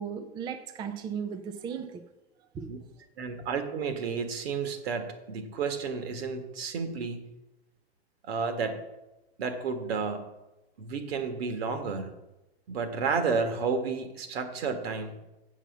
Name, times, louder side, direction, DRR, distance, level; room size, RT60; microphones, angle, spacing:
voice 1, 0.0-2.0 2.5-2.7, right 7 dB, 15° right, 0.4 m, -36 dB
voice 2, 3.2-7.3 8.2-8.8 9.4-10.3 10.8-12.1 12.7-15.1, right 5 dB, 65° right, 1.7 m, -31 dB
7.6 x 7.0 x 7.1 m
hypercardioid pair, 125°, 33 cm